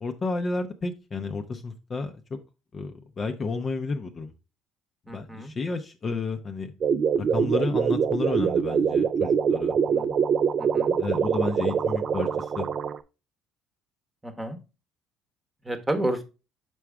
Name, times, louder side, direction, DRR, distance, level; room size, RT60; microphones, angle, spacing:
voice 1, 0.0-2.4 2.7-4.3 5.1-6.7 7.2-9.8 11.0-12.7, left 3 dB, 30° left, 6 dB, 0.6 m, -31 dB
voice 2, 5.1-5.5 9.8-10.2 10.6-10.9 14.2-14.6 15.6-16.2, right 1 dB, 10° right, 7 dB, 1.1 m, -31 dB
sound 1, 6.8-13.0, right 6 dB, 40° right, 0.4 m, -24 dB
6.1 x 4.7 x 3.4 m, 0.30 s
cardioid pair, 130°, 0 cm